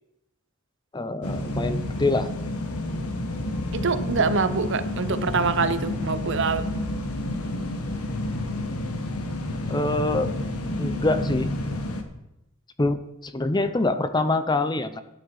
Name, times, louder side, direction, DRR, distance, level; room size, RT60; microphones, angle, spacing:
voice 1, 0.9-2.3 9.7-10.3 10.8-11.5 12.8-15.0, left 2 dB, 20° left, 11 dB, 0.6 m, -25 dB
sound 1, 1.2-12.0, left 1 dB, 90° left, 1.4 m, -30 dB
voice 2, 3.7-6.6, right 4 dB, 55° right, 12 dB, 0.8 m, -25 dB
12.5 x 9.5 x 4.8 m, 0.88 s
head